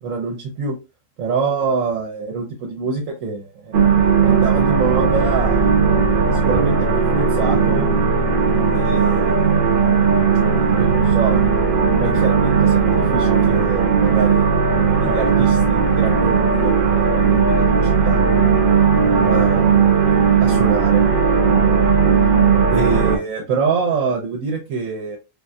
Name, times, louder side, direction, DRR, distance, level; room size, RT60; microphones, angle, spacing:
voice 1, 0.0-0.8 1.2-3.7 4.2-5.7 6.3-7.9 8.7-9.8 10.5-11.4 12.0-14.5 15.0-18.2 19.2-20.1 20.4-21.0 22.7-25.2, right 5 dB, 85° right, 0 dB, 1.1 m, -25 dB
sound 1, 3.7-23.2, right 5 dB, 55° right, 0.6 m, -16 dB
3.4 x 2.2 x 2.5 m, 0.28 s
omnidirectional pair, 1.3 m